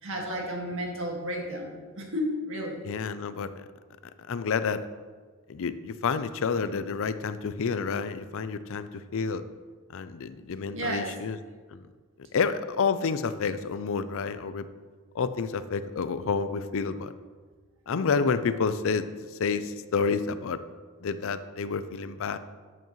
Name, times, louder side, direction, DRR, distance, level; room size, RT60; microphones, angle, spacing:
voice 1, 0.0-2.8 10.7-11.1, equal, 65° right, 0 dB, 1.9 m, -32 dB
voice 2, 2.9-3.5 4.3-4.8 5.5-9.4 9.9-11.4 11.7-11.8 12.3-14.7 15.2-17.1 17.9-19.0 19.4-20.6 21.0-22.4, left 5 dB, 65° left, 13 dB, 0.5 m, -29 dB
11.5 x 7.9 x 3.1 m, 1.5 s
head